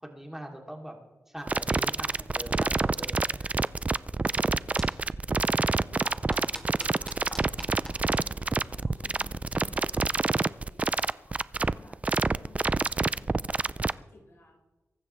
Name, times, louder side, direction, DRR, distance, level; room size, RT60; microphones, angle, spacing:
voice 1, 0.0-0.9 1.3-3.6 4.8-5.0, right 1 dB, 5° right, 1 dB, 3.0 m, -43 dB
sound 1, 1.5-13.9, right 3 dB, 25° right, 0.4 m, -27 dB
sound 2, 4.1-9.6, left 4 dB, 90° left, 2.2 m, -54 dB
sound 3, 4.1-9.3, equal, 10° left, 2.4 m, -47 dB
voice 2, 5.6-14.6, left 2 dB, 55° left, -1 dB, 4.9 m, -57 dB
23.0 x 12.0 x 3.3 m, 1.2 s
cardioid pair, 75°, 5 cm